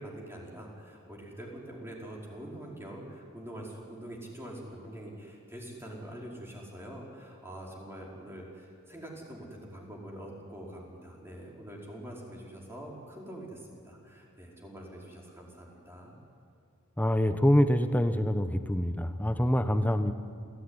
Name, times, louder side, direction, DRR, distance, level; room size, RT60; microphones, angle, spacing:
voice 1, 0.0-16.2, right 1 dB, 10° right, -2 dB, 5.0 m, -44 dB
voice 2, 17.0-20.1, equal, 10° left, 9 dB, 1.0 m, -25 dB
27.5 x 17.5 x 9.9 m, 2.4 s
head